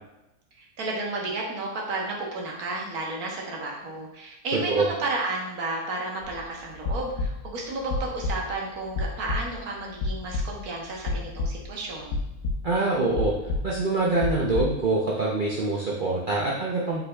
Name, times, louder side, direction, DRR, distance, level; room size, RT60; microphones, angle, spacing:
voice 1, 0.6-12.2, right 2 dB, 75° right, -1 dB, 1.4 m, -32 dB
sound 1, 6.2-6.4 6.7-7.6 7.9-8.5 9.0-9.6 10.0-10.8 11.1-11.7 12.1-12.9 13.2-14.7, left 2 dB, 85° left, 1.3 m, -30 dB
voice 2, 12.6-13.3 13.6-17.0, right 3 dB, 55° right, -4 dB, 0.6 m, -25 dB
5.6 x 3.9 x 2.3 m, 0.93 s
omnidirectional pair, 1.6 m